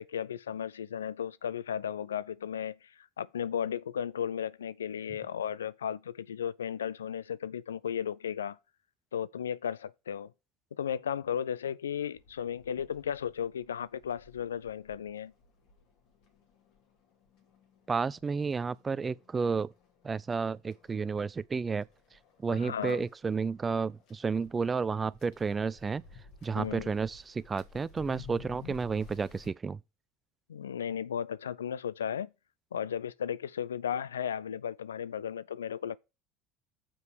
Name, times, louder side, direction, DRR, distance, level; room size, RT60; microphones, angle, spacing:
voice 1, 0.0-8.6 9.1-10.3 10.8-15.3 22.5-23.0 26.6-26.9 30.5-32.3 32.7-36.0, left 8 dB, 75° left, 0.4 m, -35 dB
sound 1, 12.1-29.5, left 5 dB, 55° left, 2.6 m, -54 dB
voice 2, 17.9-19.7 20.0-21.9 22.4-26.0 26.4-29.8, right 5 dB, 20° right, 0.4 m, -31 dB
7.1 x 5.3 x 6.3 m
figure-of-eight pair, 65°, 0 cm